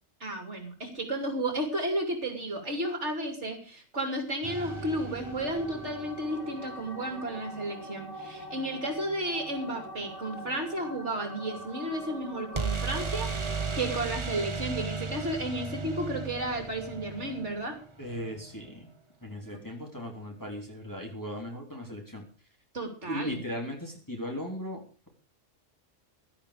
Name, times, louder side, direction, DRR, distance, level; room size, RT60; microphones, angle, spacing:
voice 1, 0.2-17.8 22.7-23.4, right 1 dB, 65° right, 5 dB, 3.0 m, -33 dB
sound 1, 4.4-14.0, right 1 dB, 75° left, 5.7 m, -43 dB
sound 2, 4.4-6.4 12.5-18.3, right 4 dB, 25° right, 1.1 m, -35 dB
voice 2, 18.0-18.9 19.2-22.2 23.0-25.1, equal, 15° left, 0 dB, 3.4 m, -37 dB
16.0 x 12.0 x 5.0 m, 0.38 s
omnidirectional pair, 1.3 m